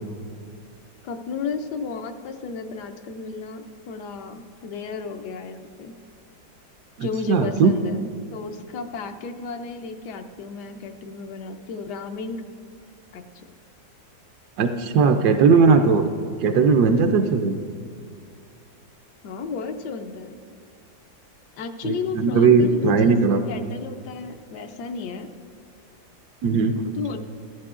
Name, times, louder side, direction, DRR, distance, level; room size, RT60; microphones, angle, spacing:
voice 1, 1.0-5.9 7.0-12.4 13.1-13.4 17.1-17.5 19.2-20.4 21.6-25.3 26.9-27.2, left 4 dB, 80° left, 7 dB, 1.3 m, -33 dB
voice 2, 7.0-7.7 14.6-16.1 16.4-17.6 21.8-23.4 26.4-27.0, right 5 dB, 75° right, 6 dB, 1.1 m, -18 dB
14.5 x 13.5 x 2.4 m, 2.2 s
omnidirectional pair, 1.7 m